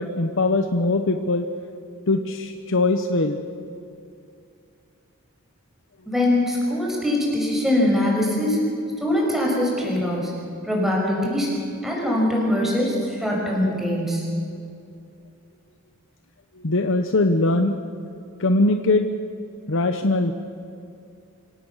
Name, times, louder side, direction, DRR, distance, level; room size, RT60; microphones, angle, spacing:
voice 1, 0.0-1.5 2.1-3.4 16.6-17.7 18.4-19.1 19.7-20.3, left 2 dB, 60° left, 7 dB, 0.9 m, -21 dB
voice 2, 6.1-8.7 9.0-10.3 10.6-11.5 11.8-14.3, left 1 dB, ahead, -3 dB, 5.8 m, -22 dB
25.5 x 17.5 x 7.3 m, 2.6 s
head